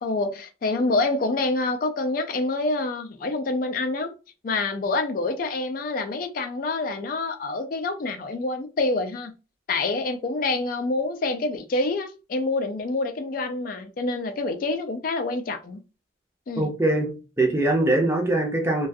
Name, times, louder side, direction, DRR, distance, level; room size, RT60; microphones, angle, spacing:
voice 1, 0.0-4.1 4.4-9.3 9.7-15.8 16.5-16.7, left 3 dB, 45° left, 0.3 m, -27 dB
voice 2, 16.6-18.9, right 2 dB, 15° right, 0.5 m, -22 dB
2.4 x 2.3 x 2.5 m
head